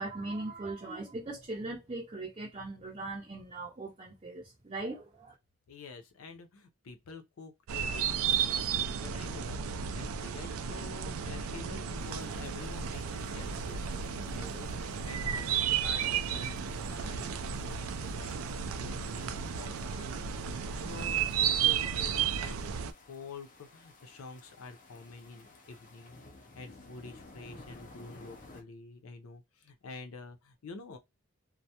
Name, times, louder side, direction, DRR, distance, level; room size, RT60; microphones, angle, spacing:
voice 1, 0.0-5.3, right 2 dB, 30° right, 0.5 m, -39 dB
voice 2, 5.7-31.0, left 4 dB, 90° left, 0.5 m, -48 dB
sound 1, 7.7-22.9, right 8 dB, 85° right, 0.3 m, -33 dB
sound 2, 12.0-28.6, left 2 dB, 35° left, 0.5 m, -56 dB
2.2 x 2.0 x 2.7 m
head